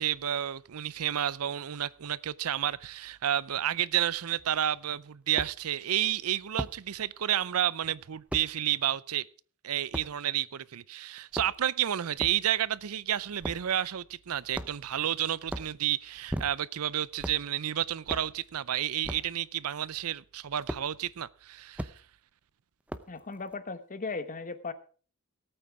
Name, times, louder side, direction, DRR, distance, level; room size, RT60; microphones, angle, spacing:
voice 1, 0.0-9.3 9.6-21.9, right 11 dB, 70° right, 0.5 m, -31 dB
sound 1, 4.4-4.5 5.4-5.5 6.6-6.8 8.3-8.5 9.9-10.1 11.2-11.7 12.2-12.4 13.4-13.7 14.5-14.9 15.4-15.7 16.3-16.8 17.2-17.4 18.1-18.3 19.0-19.3 20.7-20.8 21.8-21.9 22.9-23.2, right 1 dB, 5° right, 0.7 m, -36 dB
voice 2, 23.1-24.7, left 4 dB, 35° left, 1.1 m, -37 dB
18.0 x 8.9 x 4.7 m
head